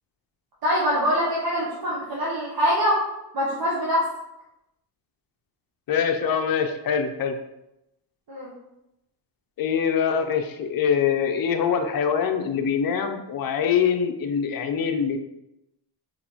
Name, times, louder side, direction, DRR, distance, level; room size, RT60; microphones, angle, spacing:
voice 1, 0.6-3.0 3.3-4.0 8.3-8.5, equal, 55° right, -8 dB, 1.3 m, -24 dB
voice 2, 5.9-7.3 9.6-15.2, left 7 dB, 55° left, 6 dB, 0.6 m, -24 dB
4.0 x 3.9 x 3.0 m, 0.89 s
cardioid pair, 125°, 44 cm